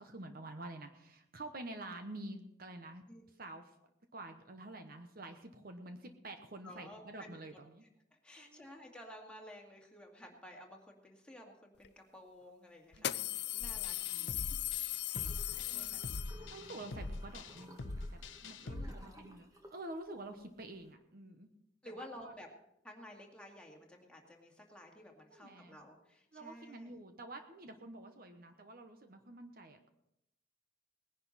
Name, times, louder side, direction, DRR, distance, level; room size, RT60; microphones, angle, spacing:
voice 1, 0.0-3.1 3.4-3.8 4.1-7.8 8.4-8.7 13.0-14.4 15.1-16.0 16.3-21.5 21.8-22.3 25.3-25.8 26.3-29.9, right 2 dB, 50° right, 6 dB, 1.0 m, -49 dB
voice 2, 6.6-7.3 8.1-14.6 15.0-16.1 18.6-19.3 21.8-22.5 22.8-26.9, left 1 dB, 5° left, 0 dB, 2.1 m, -53 dB
sound 1, 11.8-11.9 12.9-16.7, left 15 dB, 60° left, 0.5 m, -38 dB
sound 2, 13.6-18.9, left 2 dB, 85° left, 0.9 m, -44 dB
sound 3, 15.2-20.9, equal, 20° right, 1.5 m, -57 dB
19.5 x 10.5 x 4.1 m, 0.81 s
head